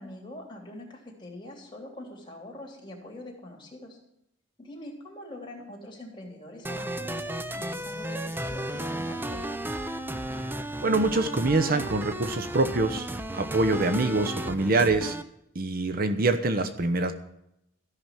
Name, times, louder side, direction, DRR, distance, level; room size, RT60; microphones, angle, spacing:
voice 1, 0.0-4.0 4.6-9.5, left 1 dB, 25° left, -1 dB, 3.2 m, -44 dB
sound 1, 6.6-15.2, right 1 dB, 10° right, 0.6 m, -34 dB
voice 2, 10.8-15.2 15.5-17.1, right 2 dB, 50° right, 10 dB, 0.8 m, -25 dB
13.5 x 6.0 x 9.1 m, 0.80 s
head